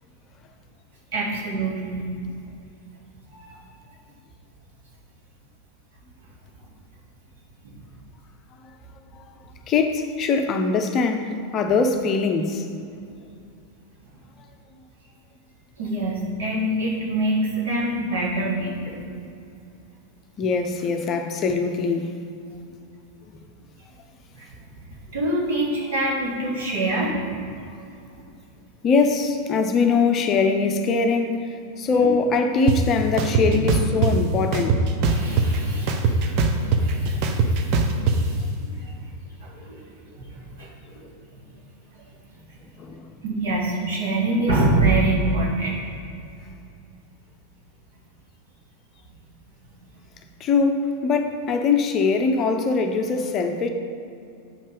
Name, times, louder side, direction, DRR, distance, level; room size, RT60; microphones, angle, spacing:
voice 1, 1.1-2.1 3.3-3.5 15.8-19.0 24.3-24.5 25.1-27.4 32.0-32.1 33.4-33.6 34.1-34.2 35.0-38.4 38.7-38.9 39.4-41.1 43.2-45.8, right 2 dB, 60° right, -3 dB, 2.0 m, -26 dB
voice 2, 9.7-12.7 20.4-22.1 28.8-34.8 38.0-38.2 42.8-43.1 50.4-53.7, left 4 dB, 30° left, 5 dB, 0.6 m, -22 dB
sound 1, 32.7-32.8 33.2-34.1 34.5-35.6 35.9-38.2, right 4 dB, 40° right, 0.7 m, -20 dB
7.6 x 5.4 x 5.1 m, 2.5 s
figure-of-eight pair, 90°, 0 cm